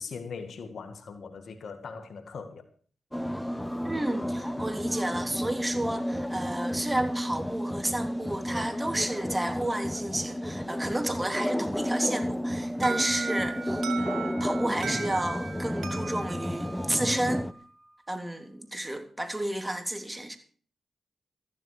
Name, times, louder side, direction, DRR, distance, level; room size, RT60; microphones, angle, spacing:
voice 1, 0.0-2.6, left 5 dB, 70° left, 1.9 m, -40 dB
sound 1, 3.1-17.5, equal, 5° left, 1.1 m, -32 dB
voice 2, 3.8-17.4 18.1-20.4, right 1 dB, 15° right, 3.3 m, -31 dB
Alarm, 12.8-17.6, right 5 dB, 80° right, 2.8 m, -38 dB
14.0 x 13.0 x 4.9 m
cardioid pair, 50°, 0 cm